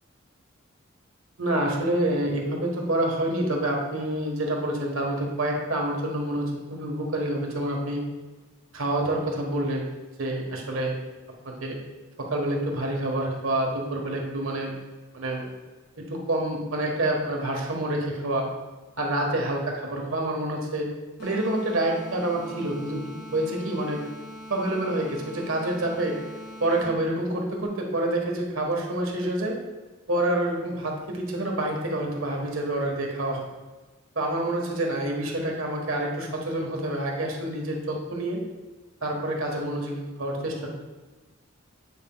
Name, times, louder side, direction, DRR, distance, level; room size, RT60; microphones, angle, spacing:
voice 1, 1.4-8.0 8.7-9.9 10.2-11.0 11.4-11.8 12.2-14.7 15.1-15.5 16.0-18.5 19.0-20.9 21.2-23.0 23.3-24.0 24.5-26.2 26.6-29.6 30.1-33.4 34.2-38.4 39.0-40.7, right 1 dB, 85° right, 0 dB, 1.3 m, -27 dB
sound 1, 21.2-27.2, equal, 55° left, 1.9 m, -42 dB
8.2 x 5.7 x 2.3 m, 1.2 s
head